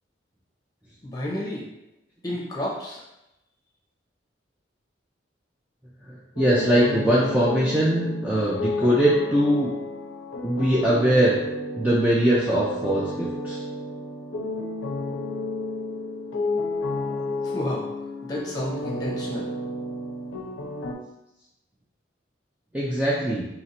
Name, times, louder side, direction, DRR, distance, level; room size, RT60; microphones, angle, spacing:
voice 1, 1.0-1.6 2.2-3.0 17.4-17.8 18.2-19.5, left 1 dB, 20° left, -5 dB, 0.9 m, -31 dB
sound 1, 6.4-20.9, left 2 dB, 85° left, 0.5 m, -31 dB
voice 2, 6.4-9.7 10.4-11.4 11.8-13.6 22.7-23.5, right 1 dB, 5° right, -7 dB, 0.4 m, -21 dB
2.9 x 2.7 x 4.2 m, 0.90 s
head